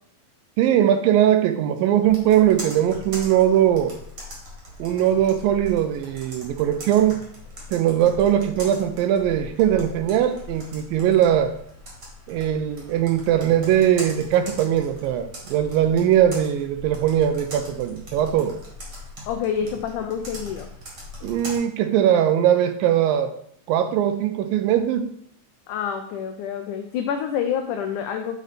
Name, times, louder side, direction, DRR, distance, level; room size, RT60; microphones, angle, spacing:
voice 1, 0.6-4.0 4.8-7.2 7.7-11.6 12.3-18.6 21.2-23.3 23.7-25.1, right 10 dB, 80° right, 9 dB, 2.2 m, -20 dB
Computer keyboard, 2.0-21.6, left 1 dB, 40° right, 1.8 m, -40 dB
voice 2, 19.3-20.7 25.7-28.4, left 8 dB, 90° left, 5 dB, 1.7 m, -27 dB
8.3 x 4.1 x 4.2 m, 0.65 s
omnidirectional pair, 4.2 m